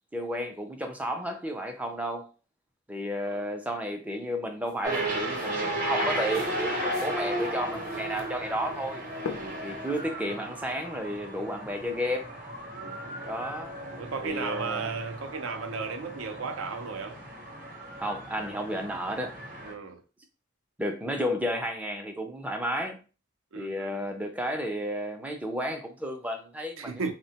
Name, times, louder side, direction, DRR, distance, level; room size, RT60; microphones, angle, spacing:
voice 1, 0.1-2.3 2.9-9.1 9.6-12.3 13.2-13.8 14.2-14.9 18.0-19.4 20.8-23.0 23.6-27.1, equal, 5° right, 0.3 m, -32 dB
sound 1, 4.8-19.7, right 1 dB, 40° right, 0.7 m, -35 dB
sound 2, 4.9-5.0 5.4-7.5 7.7-8.3 9.3-10.0, left 5 dB, 85° left, 0.4 m, -39 dB
voice 2, 12.7-13.3 14.0-17.2 19.6-20.0 23.5-24.0 26.8-27.1, right 4 dB, 80° right, 0.5 m, -35 dB
3.4 x 2.1 x 2.7 m
head